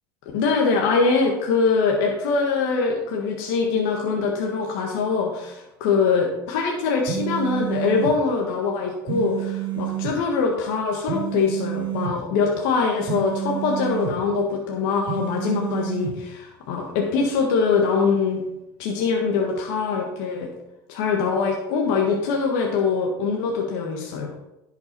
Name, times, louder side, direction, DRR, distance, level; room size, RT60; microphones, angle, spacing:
voice 1, 0.3-18.4 18.8-20.5 20.9-24.3, left 5 dB, 70° left, 0 dB, 1.6 m, -23 dB
sound 1, 7.1-8.2 9.1-10.2 11.1-12.2 13.1-14.2 15.1-16.2, right 12 dB, 50° right, 1.4 m, -29 dB
11.0 x 5.8 x 4.5 m, 0.92 s
supercardioid pair, 95°, 10 cm